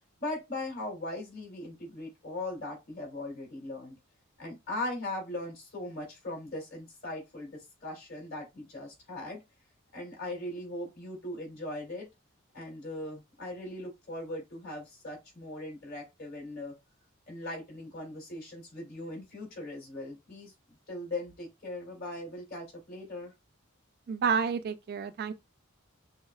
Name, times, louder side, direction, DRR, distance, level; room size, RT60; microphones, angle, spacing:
voice 1, 0.2-4.0 4.4-9.4 9.9-12.1 12.5-16.7 17.3-20.5 20.9-23.3, left 2 dB, 50° left, 2.6 m, -39 dB
voice 2, 24.1-25.3, right 6 dB, 50° right, 0.3 m, -29 dB
6.1 x 2.1 x 2.3 m
head